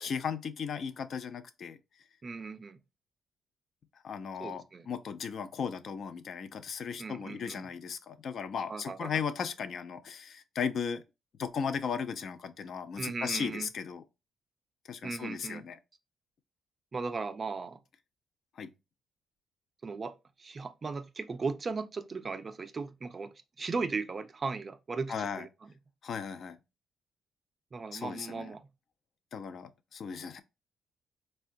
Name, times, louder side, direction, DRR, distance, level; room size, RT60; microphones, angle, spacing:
voice 1, 0.0-1.8 4.0-11.0 11.4-14.0 14.9-15.8 18.6-18.7 25.1-25.5 26.0-26.6 27.9-28.5 29.3-30.4, left 6 dB, 60° left, 0.3 m, -36 dB
voice 2, 2.2-2.8 4.4-4.9 7.0-7.6 8.7-9.1 13.0-13.7 15.0-15.6 16.9-17.8 19.8-20.1 20.4-25.5 27.7-28.6, right 4 dB, 35° right, 0.3 m, -37 dB
3.6 x 2.1 x 2.5 m
cardioid pair, 90°, 0 cm